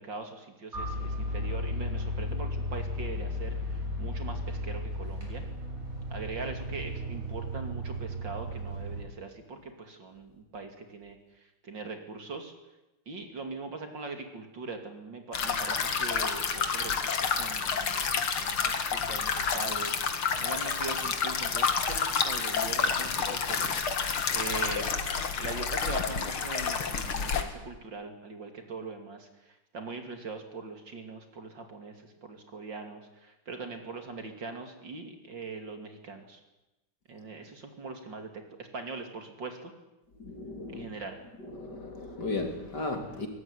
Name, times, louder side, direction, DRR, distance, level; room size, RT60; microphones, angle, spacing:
voice 1, 0.0-3.6 4.0-5.4 6.1-11.2 11.6-12.5 13.1-24.9 25.4-29.3 29.7-36.4 37.1-39.7 40.7-41.2, right 3 dB, 55° right, 5 dB, 3.5 m, -41 dB
sound 1, 0.7-3.5, right 1 dB, 10° right, 7.1 m, -46 dB
sound 2, 0.7-9.0, left 1 dB, 35° right, 7.6 m, -35 dB
sound 3, 15.3-27.4, left 6 dB, 70° left, 2.8 m, -29 dB
voice 2, 40.2-40.9 41.5-43.3, left 2 dB, 50° left, 5 dB, 3.7 m, -35 dB
22.5 x 19.0 x 9.9 m, 0.98 s
omnidirectional pair, 2.4 m